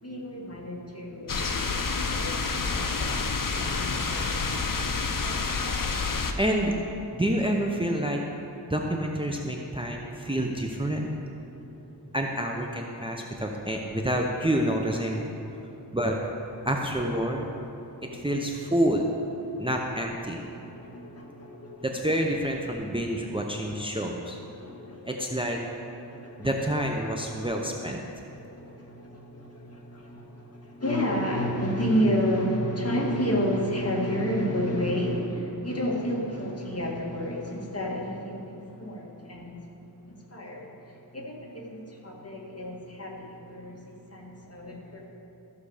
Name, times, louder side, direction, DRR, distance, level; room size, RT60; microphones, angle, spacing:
voice 1, 0.0-4.8 11.4-11.9 15.6-16.0 17.8-18.4 19.5-19.7 20.5-21.9 23.6-24.0 24.5-25.3 26.0-26.5 28.1-39.6 40.1-45.1, equal, 35° left, -2 dB, 1.9 m, -31 dB
sound 1, 1.3-6.3, left 4 dB, 50° left, 0.8 m, -28 dB
voice 2, 6.4-6.7 7.1-8.2 8.7-11.1 12.1-15.3 15.9-16.2 16.7-17.5 18.1-19.1 19.6-20.4 21.8-24.4 25.1-25.6 26.4-28.0, right 1 dB, 15° right, 1 dB, 0.8 m, -28 dB
14.0 x 6.8 x 5.0 m, 2.8 s
wide cardioid pair, 65°, 41 cm